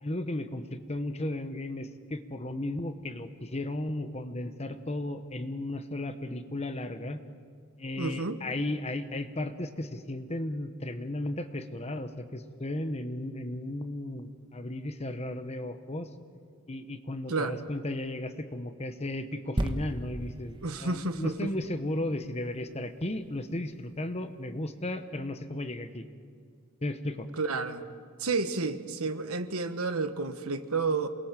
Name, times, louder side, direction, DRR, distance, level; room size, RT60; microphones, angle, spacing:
voice 1, 0.0-7.2 7.8-16.1 16.7-26.0 26.8-27.3, left 1 dB, 30° left, 9 dB, 1.1 m, -35 dB
voice 2, 8.0-8.4 17.3-17.6 20.6-21.5 27.4-27.8 28.2-31.1, right 3 dB, 85° right, 9 dB, 1.5 m, -31 dB
sound 1, 19.6-23.2 23.8-23.9, right 1 dB, 20° right, 1.2 m, -36 dB
28.0 x 21.0 x 7.5 m, 2.3 s
head